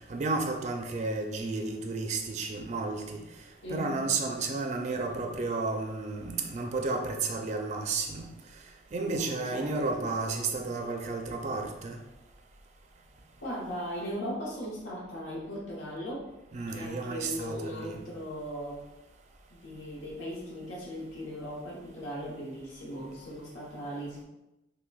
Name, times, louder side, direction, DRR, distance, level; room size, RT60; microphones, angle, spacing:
voice 1, 0.1-3.2 3.7-8.2 8.9-12.0 16.5-18.0, right 3 dB, 40° right, 3 dB, 0.4 m, -32 dB
voice 2, 3.6-4.0 9.0-10.1 13.4-16.3 16.7-18.8 19.5-24.2, equal, 80° left, -4 dB, 1.0 m, -38 dB
5.7 x 2.2 x 2.3 m, 0.94 s
head